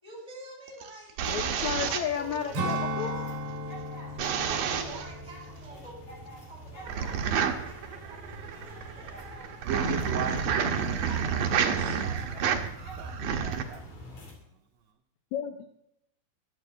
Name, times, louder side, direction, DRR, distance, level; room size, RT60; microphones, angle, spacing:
voice 1, 0.0-1.2 1.7-3.1 4.5-9.7 10.0-12.3, right 1 dB, 10° right, -1 dB, 4.4 m, -49 dB
sound 1, 0.7-2.8 4.2-5.1 6.9-13.6, right 7 dB, 70° right, 1.6 m, -30 dB
sound 2, 1.2-14.3, equal, 45° left, 3.7 m, -46 dB
voice 2, 1.3-3.4 4.0-4.2 15.3-15.6, left 8 dB, 85° left, 6 dB, 1.6 m, -33 dB
Strum, 2.5-7.3 7.6-7.9, equal, 50° right, 2.1 m, -36 dB
voice 3, 9.6-13.8 14.1-14.2, right 8 dB, 90° right, 3 dB, 1.5 m, -40 dB
11.5 x 7.5 x 8.0 m, 0.77 s
omnidirectional pair, 4.2 m